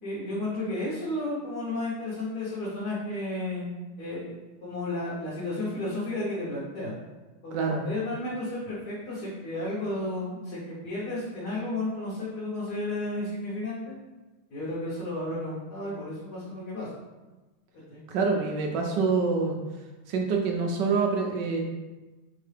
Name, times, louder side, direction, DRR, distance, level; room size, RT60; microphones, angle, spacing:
voice 1, 0.0-3.7 4.0-6.9 7.4-14.0 14.5-16.9 17.7-18.0, left 2 dB, 60° left, -8 dB, 1.5 m, -33 dB
voice 2, 7.5-7.8 18.1-19.6 20.1-21.6, right 4 dB, 70° right, 2 dB, 1.1 m, -26 dB
4.4 x 3.7 x 3.3 m, 1.1 s
omnidirectional pair, 2.2 m